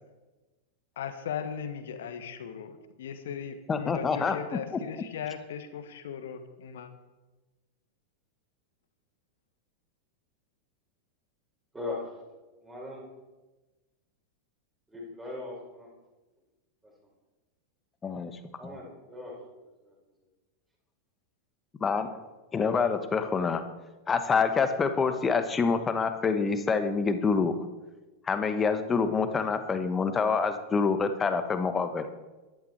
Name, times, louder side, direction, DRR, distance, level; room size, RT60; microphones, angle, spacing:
voice 1, 1.0-6.9, left 8 dB, 60° left, 9 dB, 1.4 m, -38 dB
voice 2, 3.7-4.6 18.0-18.3 21.8-22.1 22.5-23.6 24.1-27.5 28.3-32.0, left 5 dB, 20° left, 9 dB, 1.2 m, -26 dB
voice 3, 11.7-12.1 12.6-13.0 14.9-15.9 18.6-19.4 19.8-19.9, left 2 dB, 10° right, -2 dB, 5.0 m, -39 dB
14.0 x 11.0 x 4.6 m, 1.2 s
figure-of-eight pair, 90°, 0 cm